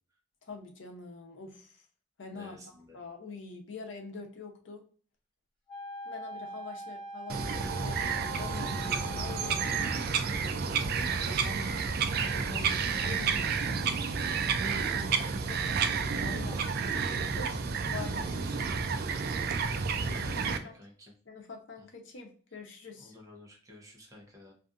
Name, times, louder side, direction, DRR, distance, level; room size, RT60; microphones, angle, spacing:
voice 1, 0.4-1.9 2.2-4.8 6.0-9.8 10.9-14.1 14.9-15.2 15.4-16.7 17.0-18.7 19.7-20.9 21.3-23.2, left 4 dB, 80° left, 2 dB, 0.7 m, -46 dB
voice 2, 2.3-3.0 20.1-21.1 23.0-24.5, left 2 dB, 20° right, -1 dB, 0.7 m, -52 dB
Wind instrument woodwind instrument, 5.7-10.1, right 1 dB, 30° left, 1.2 m, -43 dB
Bird vocalization bird call bird song, 7.3-20.6, right 5 dB, 55° right, 0.3 m, -30 dB
2.6 x 2.4 x 2.4 m, 0.43 s
head